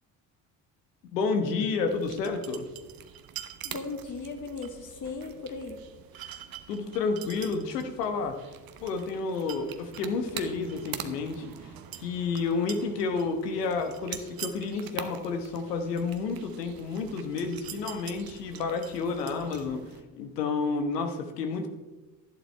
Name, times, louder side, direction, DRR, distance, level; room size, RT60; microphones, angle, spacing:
voice 1, 1.1-2.7 6.2-6.4 6.7-8.4 8.8-11.4 12.0-19.8 20.1-21.7, left 4 dB, 85° left, 6 dB, 1.2 m, -30 dB
sound 1, 1.9-20.0, right 10 dB, 50° right, 1.0 m, -44 dB
voice 2, 3.6-5.8, left 4 dB, 40° left, 4 dB, 2.1 m, -37 dB
11.5 x 11.0 x 3.4 m, 1.2 s
hypercardioid pair, 55°, 48 cm